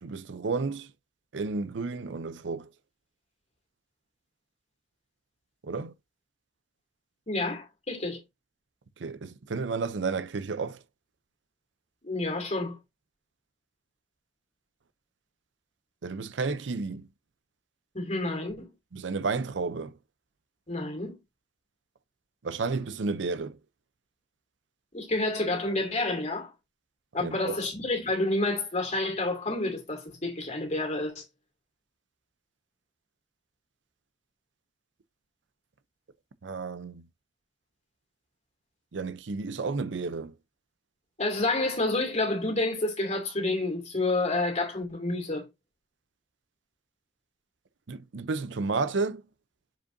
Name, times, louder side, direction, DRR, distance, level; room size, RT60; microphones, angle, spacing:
voice 1, 0.0-0.9 1.3-2.7 5.6-5.9 9.0-10.8 16.0-17.1 18.9-19.9 22.4-23.6 27.2-27.6 36.4-37.1 38.9-40.3 47.9-49.2, right 4 dB, 80° right, 0.6 m, -32 dB
voice 2, 7.3-8.2 12.0-12.7 17.9-18.7 20.7-21.2 24.9-26.5 27.1-31.2 41.2-45.4, left 2 dB, 40° left, 2.6 m, -29 dB
7.1 x 5.2 x 2.6 m
head